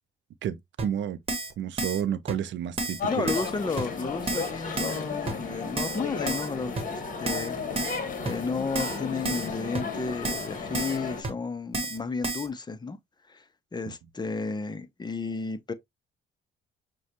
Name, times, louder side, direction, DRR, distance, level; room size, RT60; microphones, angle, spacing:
voice 1, 0.4-1.2 1.6-3.3, right 9 dB, 70° right, 0.5 m, -31 dB
Keyboard (musical), 0.8-0.9 1.3-1.5 1.8-2.0 2.3-2.4 2.8-3.0 3.3-3.5 3.8-3.9 4.3-4.5 4.8-5.0 5.3-5.4 5.8-6.0 6.3-6.5 6.8-6.9 7.3-7.5 7.8-8.0 8.3-8.4 8.8-9.0 9.3-9.5 9.7-9.8 10.2-10.5 10.7-11.0 11.2-11.3 11.7-12.0 12.2-12.5, right 2 dB, 30° right, 1.2 m, -31 dB
sound 1, 3.0-11.2, left 5 dB, 45° left, 1.3 m, -34 dB
voice 2, 3.0-13.0 13.3-13.4 13.7-15.7, left 4 dB, 20° left, 0.6 m, -33 dB
6.1 x 2.2 x 2.8 m
cardioid pair, 90°, 20 cm